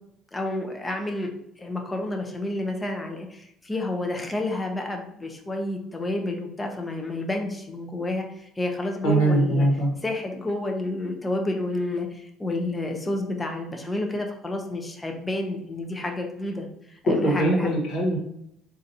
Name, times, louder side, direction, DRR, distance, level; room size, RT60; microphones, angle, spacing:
voice 1, 0.3-1.3 1.6-9.7 10.0-17.7, left 2 dB, 20° left, 2 dB, 0.6 m, -30 dB
voice 2, 9.0-9.9 17.1-18.2, right 1 dB, 70° left, -2 dB, 1.2 m, -21 dB
3.9 x 2.5 x 2.7 m, 0.77 s
supercardioid pair, 80°, 0 cm